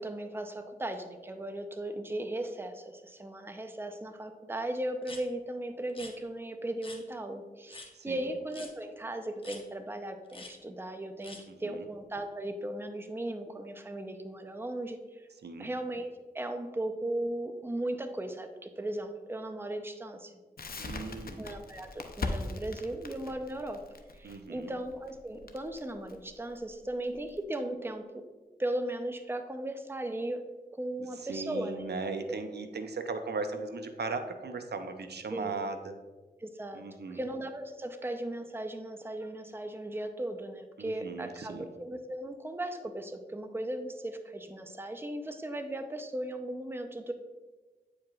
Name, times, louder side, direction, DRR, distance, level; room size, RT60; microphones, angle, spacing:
voice 1, 0.0-15.3 15.6-20.4 21.4-23.8 24.1-28.2 28.6-30.4 30.7-31.8 35.3-35.5 36.4-47.1, right 1 dB, 15° right, 7 dB, 0.6 m, -37 dB
sound 1, 5.0-5.2 5.9-6.1 6.8-7.0 7.7-7.9 8.5-8.7 9.4-9.6 10.3-10.5 11.2-11.4, left 2 dB, 30° left, 1.1 m, -46 dB
voice 2, 7.9-8.3 11.5-11.9 15.4-15.7 20.8-21.5 24.2-24.7 31.0-35.9 36.7-37.2 40.8-41.7, right 4 dB, 75° right, 7 dB, 0.6 m, -38 dB
Crackle, 20.6-27.4, left 3 dB, 60° left, 0.7 m, -40 dB
8.7 x 4.8 x 2.4 m, 1.3 s
cardioid pair, 40°, 17 cm